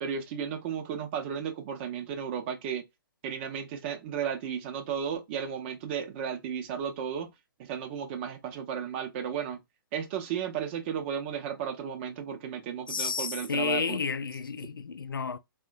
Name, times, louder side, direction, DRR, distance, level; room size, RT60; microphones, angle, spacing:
voice 1, 0.0-2.9 3.2-7.3 7.6-9.6 9.9-14.0, right 8 dB, 30° right, 0.6 m, -34 dB
voice 2, 12.9-15.4, left 5 dB, 70° left, 0.4 m, -31 dB
3.3 x 2.1 x 2.4 m
figure-of-eight pair, 125°, 12 cm